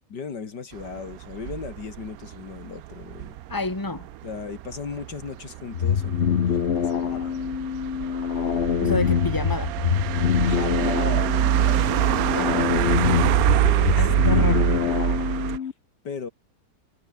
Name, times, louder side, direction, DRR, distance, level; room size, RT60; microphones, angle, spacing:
voice 1, 0.1-3.4 4.2-7.4 10.4-11.8 13.6-14.8 16.0-16.3, left 5 dB, 75° left, 2.8 m, -37 dB
sound 1, 0.7-15.6, right 14 dB, 70° right, 1.0 m, -25 dB
voice 2, 3.5-4.1 8.8-9.7 12.3-12.7 14.0-14.7, left 3 dB, 10° left, 2.3 m, -29 dB
sound 2, 5.7-15.7, left 8 dB, 45° left, 1.0 m, -24 dB
omnidirectional pair, 1.9 m